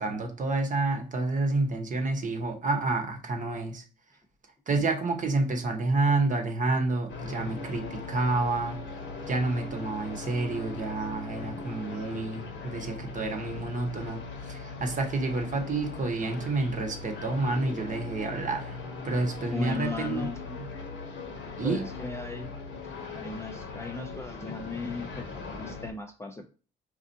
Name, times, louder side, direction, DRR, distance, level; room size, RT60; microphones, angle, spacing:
voice 1, 0.0-3.8 4.7-8.8 9.3-18.8 19.0-20.7 21.6-21.8, right 3 dB, 40° right, 5 dB, 0.9 m, -29 dB
sound 1, 7.1-25.9, left 4 dB, 70° left, 0.8 m, -39 dB
voice 2, 19.5-20.4 21.6-22.5 23.1-26.5, left 4 dB, 15° left, 3 dB, 0.4 m, -37 dB
4.3 x 2.4 x 2.6 m, 0.37 s
cardioid pair, 90°, 20 cm